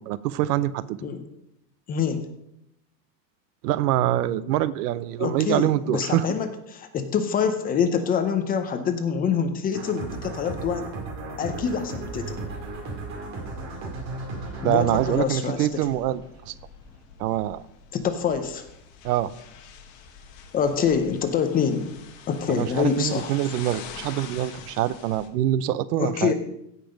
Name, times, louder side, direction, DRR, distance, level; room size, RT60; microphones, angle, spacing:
voice 1, 0.1-1.0 3.6-6.2 14.6-16.5 17.2-17.6 19.0-19.3 22.5-26.3, right 13 dB, 70° right, 18 dB, 0.7 m, -25 dB
voice 2, 1.9-2.3 5.2-10.9 11.4-12.4 14.6-15.9 17.9-18.6 20.5-21.9 22.3-23.4 26.0-26.3, left 7 dB, 20° left, 8 dB, 0.6 m, -25 dB
sound 1, 9.7-16.5, right 3 dB, 35° right, 2.4 m, -36 dB
sound 2, 12.0-25.3, left 6 dB, 45° left, 1.6 m, -45 dB
16.0 x 5.7 x 5.1 m, 0.79 s
supercardioid pair, 155°, 49 cm